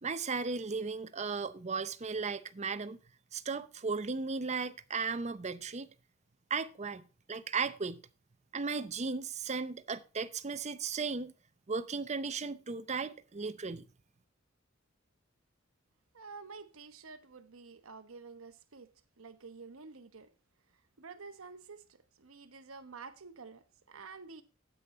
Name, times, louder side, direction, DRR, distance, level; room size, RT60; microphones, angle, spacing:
voice 1, 0.0-3.0 3.3-5.9 6.5-7.0 7.3-8.0 8.5-11.3 11.7-13.9, right 4 dB, 35° right, 0.6 m, -36 dB
voice 2, 16.1-18.9 19.2-20.3 21.0-24.4, right 4 dB, 90° right, 1.0 m, -50 dB
8.8 x 8.4 x 4.2 m
head